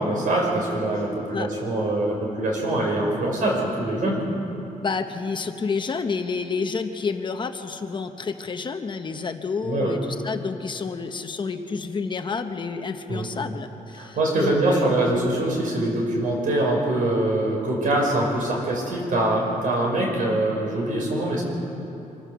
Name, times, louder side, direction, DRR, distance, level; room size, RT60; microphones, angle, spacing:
voice 1, 0.0-4.2 9.6-10.0 13.1-13.3 14.0-21.4, right 1 dB, 70° right, 0 dB, 5.1 m, -24 dB
voice 2, 4.8-14.9, left 5 dB, 35° left, 7 dB, 0.9 m, -29 dB
25.5 x 15.0 x 6.9 m, 3.0 s
wide cardioid pair, 160°, 14 cm